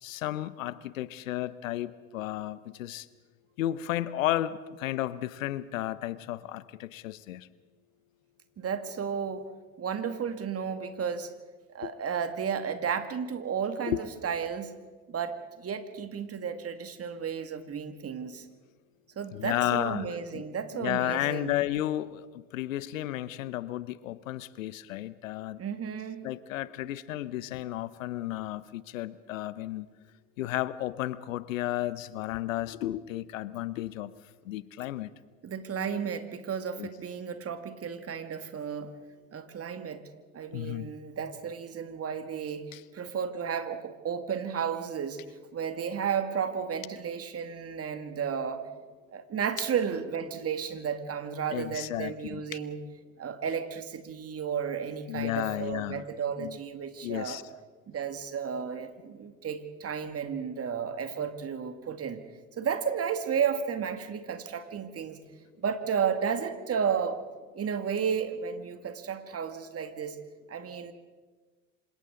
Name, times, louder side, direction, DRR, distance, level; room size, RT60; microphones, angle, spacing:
voice 1, 0.0-3.1 3.6-7.5 13.9-14.0 19.3-20.1 20.3-20.5 20.7-25.6 26.2-29.9 30.4-34.1 34.4-35.1 36.8-36.9 40.5-40.9 42.7-42.8 51.5-52.4 55.1-56.0 56.4-56.6 57.0-57.4, left 14 dB, 80° left, 18 dB, 0.8 m, -33 dB
voice 2, 8.6-9.5 9.8-11.3 11.7-14.7 15.1-18.5 19.2-21.5 25.6-26.3 35.4-38.9 39.3-40.0 40.3-45.2 45.5-48.6 49.1-52.8 53.2-57.4 57.9-62.2 62.6-65.2 65.6-67.2 67.5-70.2 70.5-70.9, right 7 dB, 35° right, 8 dB, 2.0 m, -33 dB
27.0 x 26.0 x 3.8 m, 1.4 s
hypercardioid pair, 65°, 39 cm